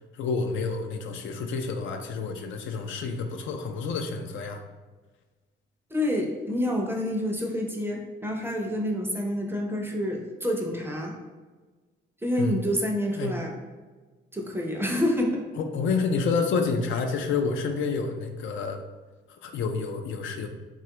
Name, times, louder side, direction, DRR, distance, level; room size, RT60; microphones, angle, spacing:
voice 1, 0.1-4.6 12.4-12.6 13.2-13.3 15.6-18.8 19.3-20.5, left 4 dB, 75° left, 5 dB, 0.4 m, -29 dB
voice 2, 5.9-11.2 12.2-13.5 14.3-15.4, left 1 dB, 10° right, 1 dB, 0.5 m, -28 dB
3.2 x 2.3 x 2.8 m, 1.3 s
cardioid pair, 90°, 20 cm